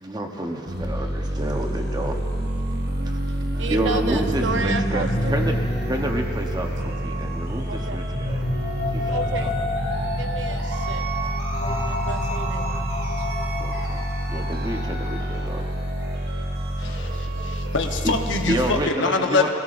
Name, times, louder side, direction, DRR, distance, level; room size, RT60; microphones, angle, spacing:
voice 1, 0.0-2.2 3.0-3.2 3.7-5.6 5.9-8.4 8.9-9.5 13.6-14.0 14.3-15.6 18.0-18.1 18.5-19.5, right 1 dB, 20° right, 2 dB, 0.9 m, -29 dB
sound 1, 0.7-18.8, right 1 dB, 60° right, 1.1 m, -28 dB
voice 2, 3.2-5.5 7.7-8.0 9.1-9.6 10.2-11.0 11.9-12.8 13.2-13.3, right 4 dB, 80° right, 6 dB, 0.7 m, -32 dB
sound 2, 3.5-15.4, left 1 dB, 60° left, 1.6 m, -30 dB
voice 3, 16.8-19.5, left 3 dB, 85° left, 4 dB, 0.9 m, -25 dB
21.5 x 15.5 x 2.6 m, 2.7 s
head